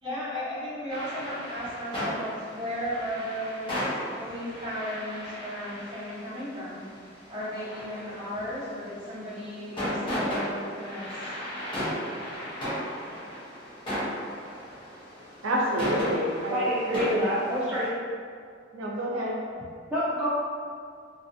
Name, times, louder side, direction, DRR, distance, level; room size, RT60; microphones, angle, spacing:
voice 1, 0.0-3.9 4.2-6.9 7.3-11.3, equal, 25° right, -12 dB, 1.0 m, -35 dB
sound 1, 0.9-17.9, equal, 25° left, 0.8 m, -35 dB
voice 2, 15.4-17.2 18.7-19.3, equal, 80° right, -3 dB, 0.4 m, -29 dB
voice 3, 16.5-17.9 19.9-20.4, equal, 5° right, -10 dB, 0.3 m, -27 dB
2.4 x 2.4 x 2.6 m, 2.1 s
head